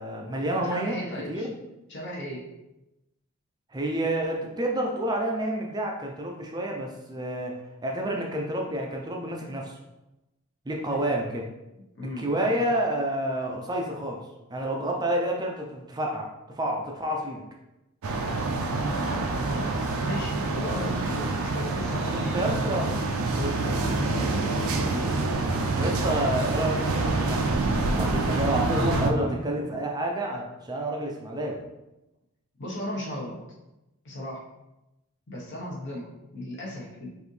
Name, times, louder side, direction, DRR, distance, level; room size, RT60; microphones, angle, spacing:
voice 1, 0.0-1.0 1.3-1.5 3.7-9.8 10.7-11.5 12.2-14.2 14.5-17.4 22.1-22.9 23.3-23.6 25.8-27.5 27.9-31.6, right 1 dB, 20° right, 0 dB, 0.4 m, -29 dB
voice 2, 0.7-1.5 1.9-2.5 11.9-12.6 19.0-22.6 23.6-25.2 26.2-26.3 32.6-33.4 34.0-34.4 35.3-37.1, left 1 dB, 55° left, -3 dB, 1.1 m, -36 dB
sound 1, 18.0-29.1, right 3 dB, 75° right, 0.5 m, -27 dB
sound 2, 21.7-30.0, right 1 dB, 20° left, 1.3 m, -39 dB
4.9 x 2.7 x 3.2 m, 0.95 s
head